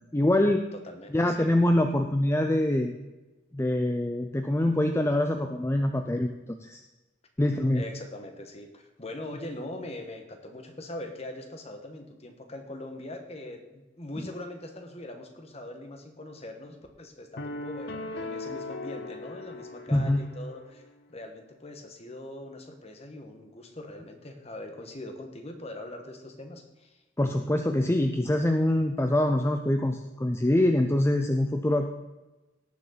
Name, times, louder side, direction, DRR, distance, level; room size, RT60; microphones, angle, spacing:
voice 1, 0.1-0.6 1.1-2.9 3.5-6.8 7.4-7.8 19.9-20.2 27.2-31.9, left 1 dB, 15° left, 5 dB, 0.5 m, -24 dB
voice 2, 0.8-1.5 7.7-20.8 21.1-27.0, left 1 dB, 35° left, 5 dB, 1.5 m, -42 dB
sound 1, 17.4-20.6, left 2 dB, 60° left, 0.8 m, -38 dB
18.0 x 6.9 x 4.0 m, 1.1 s
head